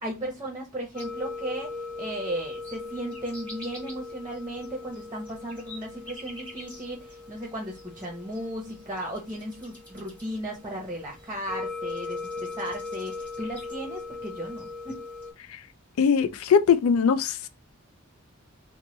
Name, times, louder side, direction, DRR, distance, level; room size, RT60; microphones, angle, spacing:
voice 1, 0.0-15.0, right 1 dB, 15° right, 0.7 m, -36 dB
sound 1, 0.9-15.3, left 3 dB, 5° left, 1.1 m, -39 dB
voice 2, 16.0-17.5, left 6 dB, 80° left, 0.4 m, -21 dB
2.9 x 2.1 x 3.0 m
head